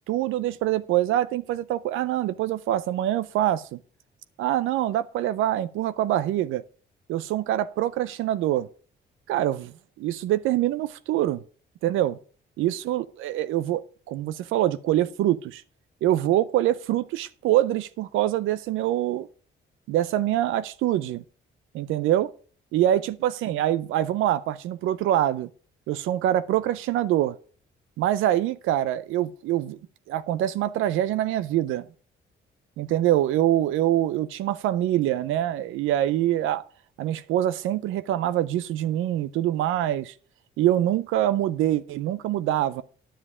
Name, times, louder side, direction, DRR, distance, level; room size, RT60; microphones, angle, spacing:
voice 1, 0.1-3.8 4.4-6.6 7.1-8.7 9.3-9.7 10.0-11.4 11.8-12.2 12.6-15.6 16.0-19.3 19.9-21.2 21.7-22.3 22.7-25.5 25.9-27.4 28.0-29.8 30.1-31.9 32.8-36.6 37.0-40.1 40.6-42.8, right 13 dB, 90° right, 0.5 m, -24 dB
10.0 x 7.3 x 4.9 m
cardioid pair, 90°, 20 cm